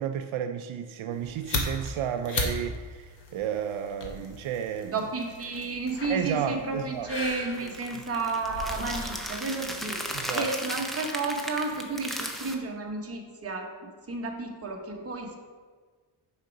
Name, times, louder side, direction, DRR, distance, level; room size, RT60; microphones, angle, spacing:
voice 1, 0.0-5.0 6.1-7.1 7.6-8.0 10.1-10.5, right 9 dB, 80° right, 0.5 m, -32 dB
sound 1, 1.1-10.3, left 3 dB, 60° left, 1.2 m, -37 dB
voice 2, 4.9-10.0 10.3-13.7 14.1-15.4, right 3 dB, 30° right, 1.0 m, -32 dB
sound 2, 7.5-12.5, equal, ahead, 0.5 m, -36 dB
6.5 x 5.0 x 5.1 m
wide cardioid pair, 135°, 47 cm